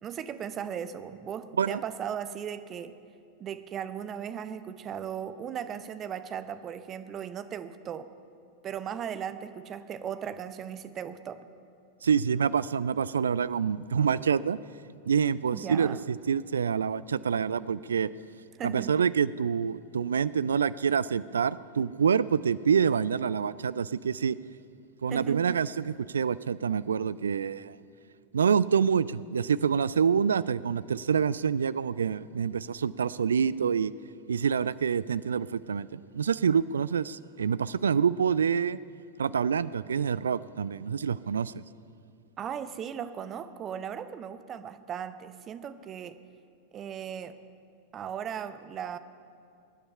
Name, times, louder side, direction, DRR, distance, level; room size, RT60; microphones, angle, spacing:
voice 1, 0.0-3.0 3.4-8.1 8.6-11.4 15.5-16.0 18.6-18.9 25.1-25.4 42.4-46.2 46.7-47.4 47.9-49.0, right 8 dB, 30° right, 12 dB, 0.7 m, -37 dB
voice 2, 12.0-14.6 15.1-18.1 18.6-24.4 25.0-27.8 28.3-33.9 34.3-38.8 39.2-41.6, right 7 dB, 70° right, 18 dB, 0.3 m, -27 dB
23.5 x 9.9 x 5.5 m, 2.4 s
figure-of-eight pair, 90°, 0 cm